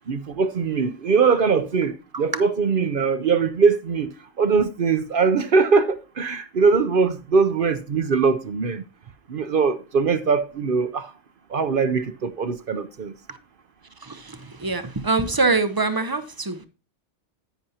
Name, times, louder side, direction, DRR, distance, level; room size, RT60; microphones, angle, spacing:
voice 1, 0.1-4.1 4.4-8.8 9.3-11.1 11.5-13.1, right 5 dB, 55° right, 0.8 m, -21 dB
voice 2, 14.0-16.7, right 3 dB, 25° right, 0.6 m, -24 dB
10.0 x 9.1 x 2.8 m
omnidirectional pair, 1.2 m